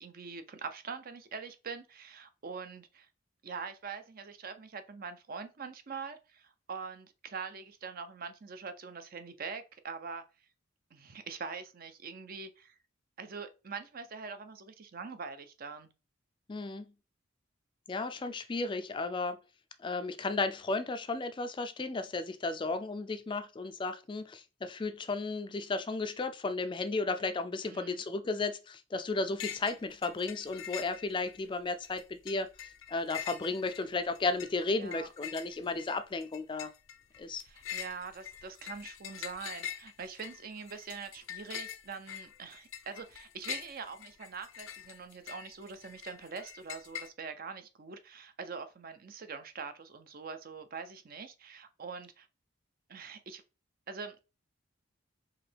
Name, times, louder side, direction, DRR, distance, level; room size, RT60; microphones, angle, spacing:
voice 1, 0.0-3.1 3.4-10.2 10.9-12.7 13.2-15.9 27.7-28.0 34.8-35.1 37.4-52.3 52.9-53.4 53.9-54.2, right 5 dB, 50° right, 0.5 m, -43 dB
voice 2, 16.5-16.8 17.9-19.4 19.8-36.7 37.2-37.4, left 3 dB, 25° left, 0.3 m, -34 dB
sound 1, 29.4-29.8 30.0-31.4 31.8-47.1, left 10 dB, 85° left, 0.6 m, -44 dB
4.8 x 3.0 x 3.3 m
head